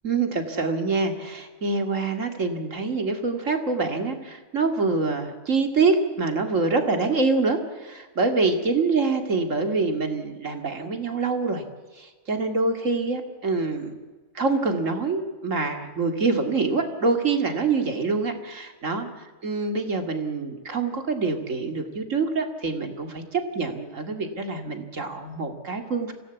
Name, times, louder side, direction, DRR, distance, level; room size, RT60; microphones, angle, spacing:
voice 1, 0.0-11.6 12.0-13.9 14.3-19.1 19.4-26.1, right 4 dB, 75° right, 5 dB, 2.6 m, -25 dB
26.0 x 17.0 x 8.2 m, 1.3 s
omnidirectional pair, 1.3 m